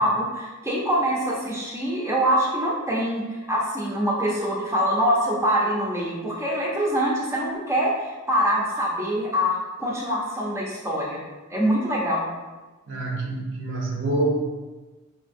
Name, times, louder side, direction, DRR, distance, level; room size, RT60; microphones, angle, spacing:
voice 1, 0.0-11.2 11.5-12.3, equal, 15° right, -4 dB, 0.6 m, -24 dB
voice 2, 12.9-14.4, right 2 dB, 65° right, -1 dB, 0.7 m, -26 dB
5.3 x 2.8 x 2.6 m, 1.2 s
head